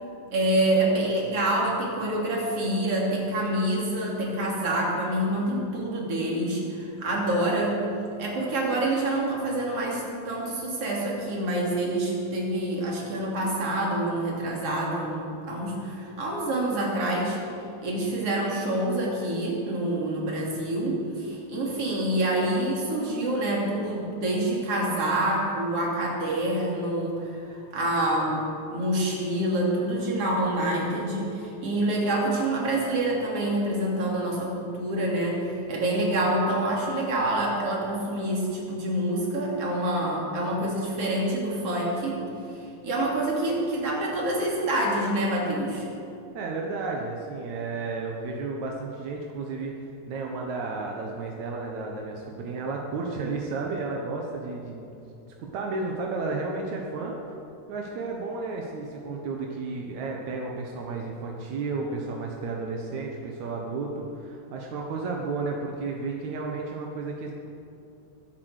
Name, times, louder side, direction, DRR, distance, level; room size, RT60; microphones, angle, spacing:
voice 1, 0.3-7.9 8.2-17.4 17.8-28.4 28.7-42.2 42.8-45.9, right 1 dB, 40° right, -3 dB, 3.5 m, -27 dB
voice 2, 46.3-54.9 55.4-57.3 57.7-67.3, right 3 dB, 70° right, 0 dB, 1.8 m, -32 dB
24.0 x 8.4 x 6.5 m, 2.7 s
omnidirectional pair, 4.9 m